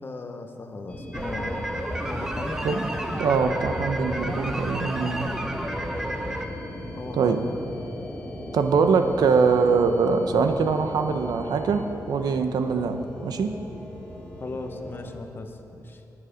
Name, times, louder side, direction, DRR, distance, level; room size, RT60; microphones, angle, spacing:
voice 1, 0.0-1.7 2.0-2.6 5.2-5.4 6.9-7.8 14.4-15.6 15.8-16.0, left 3 dB, 35° left, 6 dB, 0.8 m, -37 dB
sound 1, 0.9-15.1, left 1 dB, 15° left, 1.5 m, -38 dB
sound 2, 1.1-6.5, right 1 dB, 10° right, 0.8 m, -31 dB
voice 2, 3.2-5.3 7.1-7.4 8.5-13.5, right 5 dB, 85° right, 7 dB, 0.8 m, -23 dB
20.5 x 7.3 x 5.1 m, 3.0 s
wide cardioid pair, 165°, 7 cm